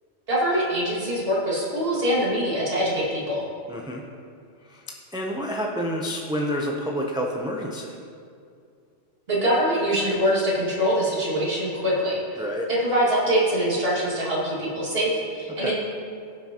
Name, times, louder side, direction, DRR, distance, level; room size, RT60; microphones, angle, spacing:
voice 1, 0.3-3.4 9.3-12.4 12.7-15.7, equal, 55° right, -6 dB, 2.3 m, -24 dB
voice 2, 3.7-4.1 4.6-4.8 5.1-8.0 12.4-12.7 15.6-15.7, equal, 5° right, -1 dB, 0.4 m, -29 dB
15.5 x 5.8 x 2.9 m, 2.3 s
omnidirectional pair, 1.2 m